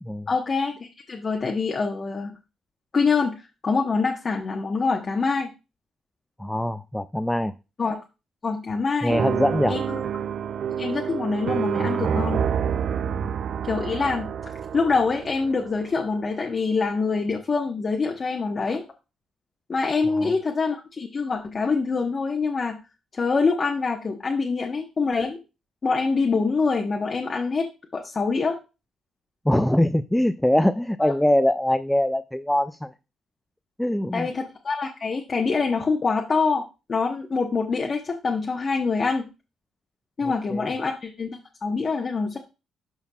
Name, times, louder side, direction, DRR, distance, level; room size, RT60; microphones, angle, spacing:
voice 1, 0.3-2.3 2.9-3.3 3.6-5.5 7.8-8.0 8.4-9.2 9.7-10.0 10.8-12.4 13.6-18.8 19.7-22.8 23.1-25.4 25.8-28.6 31.0-31.1 34.1-36.6 36.9-39.3 40.2-42.4, left 4 dB, 40° left, 2 dB, 1.0 m, -25 dB
voice 2, 6.4-7.5 9.0-9.8 13.1-13.3 20.2-20.3 29.5-32.9 33.8-34.3 40.2-40.7, left 1 dB, 5° left, 11 dB, 0.3 m, -23 dB
sound 1, 9.1-16.2, right 8 dB, 60° right, 0.4 m, -28 dB
12.0 x 4.5 x 2.3 m, 0.29 s
cardioid pair, 90°, 0 cm